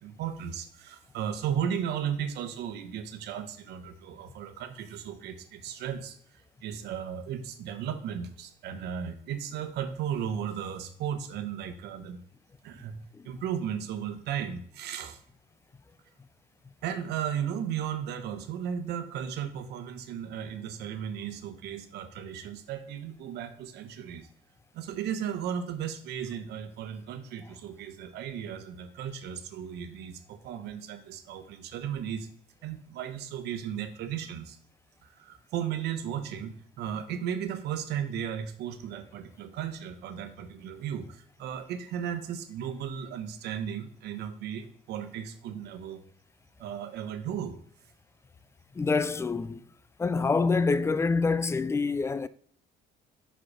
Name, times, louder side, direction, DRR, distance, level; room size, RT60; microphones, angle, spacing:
voice 1, 0.0-12.2 12.6-13.0 13.2-15.2 16.8-24.3 24.7-32.3 32.6-34.6 35.0-46.0 46.6-47.6, right 8 dB, 80° right, 1.0 m, -35 dB
voice 2, 48.8-49.6 50.0-52.3, left 4 dB, 15° left, 0.3 m, -26 dB
5.6 x 5.1 x 4.9 m
cardioid pair, 110°, 17 cm